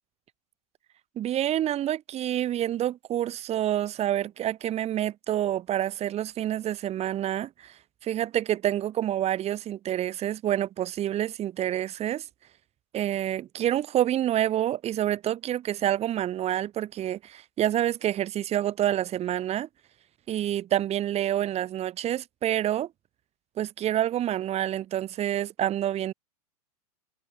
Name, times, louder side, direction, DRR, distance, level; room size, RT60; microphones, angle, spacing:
voice 1, 1.1-12.3 12.9-19.7 20.3-22.9 23.6-26.1, right 12 dB, 30° right, 5.1 m, -28 dB
open air
hypercardioid pair, 100°, 20 cm